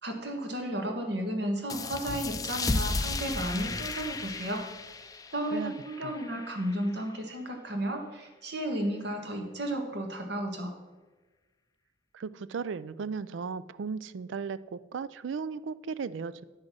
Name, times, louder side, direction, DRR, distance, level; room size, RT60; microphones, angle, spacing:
voice 1, 0.0-4.6 5.3-10.7, right 1 dB, 60° right, 3 dB, 1.6 m, -33 dB
sound 1, 1.7-6.9, left 3 dB, 20° left, 0.4 m, -34 dB
voice 2, 12.1-16.4, right 5 dB, 80° right, 17 dB, 0.4 m, -36 dB
9.7 x 6.4 x 6.2 m, 1.3 s
head